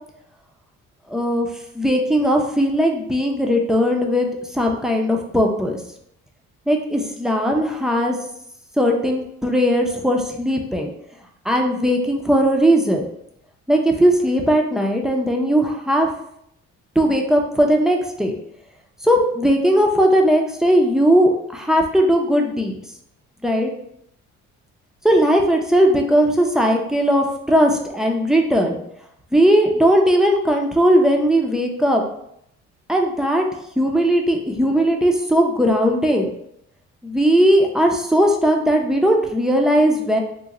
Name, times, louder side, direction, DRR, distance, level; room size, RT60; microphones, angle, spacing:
voice 1, 1.1-1.5 1.7-5.8 6.7-8.1 8.8-10.9 11.5-13.1 13.7-16.1 17.0-18.4 19.0-22.8 23.4-23.7 25.0-28.8 29.3-32.0 32.9-33.4 33.8-36.3 37.0-40.2, equal, ahead, 1 dB, 0.5 m, -18 dB
3.0 x 2.1 x 3.6 m, 0.74 s
cardioid pair, 90°, 30 cm